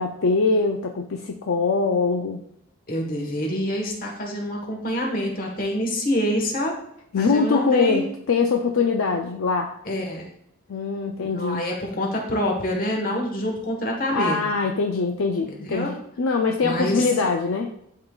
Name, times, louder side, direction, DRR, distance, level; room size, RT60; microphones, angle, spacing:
voice 1, 0.0-2.4 7.1-9.7 10.7-11.6 14.1-17.7, left 4 dB, 65° left, 3 dB, 0.5 m, -23 dB
voice 2, 2.9-6.7 7.2-8.0 9.8-10.3 11.2-14.4 15.5-15.9 16.6-17.0, equal, 40° left, 0 dB, 1.3 m, -26 dB
11.0 x 3.8 x 2.4 m, 0.72 s
head